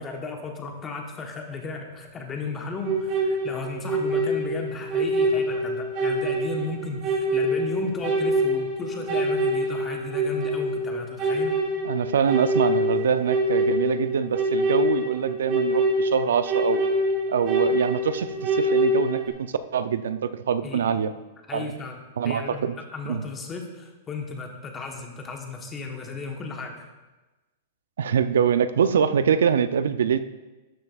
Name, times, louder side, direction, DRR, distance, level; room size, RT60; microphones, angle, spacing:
voice 1, 0.0-11.6 20.6-20.8 21.5-22.6 22.9-26.9, left 3 dB, 20° left, 2 dB, 1.1 m, -35 dB
sound 1, 2.8-19.3, right 1 dB, 40° right, 1.9 m, -25 dB
voice 2, 11.8-16.8 17.3-19.5 19.7-21.1 21.5-21.8 22.2-22.7 23.1-23.2 28.0-30.2, right 7 dB, 90° right, 12 dB, 0.4 m, -24 dB
11.5 x 7.6 x 2.4 m, 1.1 s
supercardioid pair, 155°, 0 cm